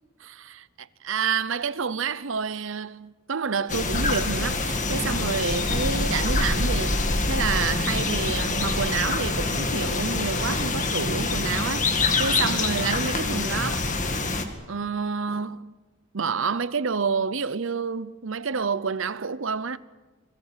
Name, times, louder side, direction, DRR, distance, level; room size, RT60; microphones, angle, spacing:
voice 1, 0.2-13.8 14.7-15.7 16.1-19.8, right 5 dB, 60° right, 0.7 m, -29 dB
sound 1, 3.7-14.5, left 3 dB, 35° left, 2.2 m, -25 dB
29.0 x 21.5 x 7.5 m
head